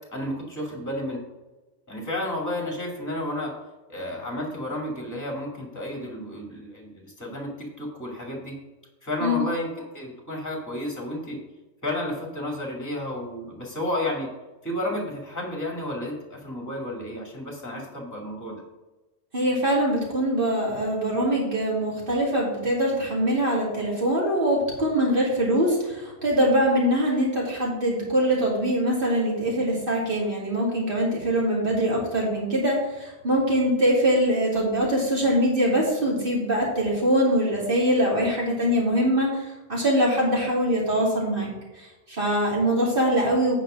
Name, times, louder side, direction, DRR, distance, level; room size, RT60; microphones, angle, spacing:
voice 1, 0.1-1.2 1.9-3.5 3.9-8.5 9.0-9.7 9.9-11.4 11.8-14.3 14.6-18.6, left 1 dB, 15° left, 0 dB, 2.2 m, -31 dB
voice 2, 19.3-43.6, equal, 45° right, -4 dB, 3.1 m, -23 dB
9.1 x 5.1 x 6.2 m, 1.1 s
omnidirectional pair, 1.2 m